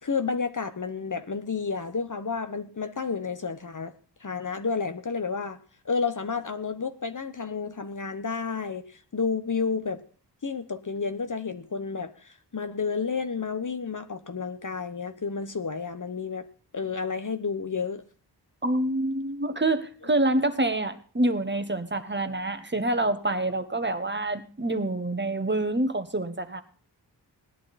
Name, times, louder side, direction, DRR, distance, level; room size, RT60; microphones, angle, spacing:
voice 1, 0.0-3.9 4.2-5.6 5.8-10.0 10.4-16.5 16.7-18.0, left 5 dB, 45° left, 10 dB, 1.1 m, -31 dB
voice 2, 18.6-26.6, right 2 dB, 25° right, 10 dB, 1.3 m, -27 dB
18.5 x 11.5 x 4.2 m, 0.41 s
wide cardioid pair, 100°, 41 cm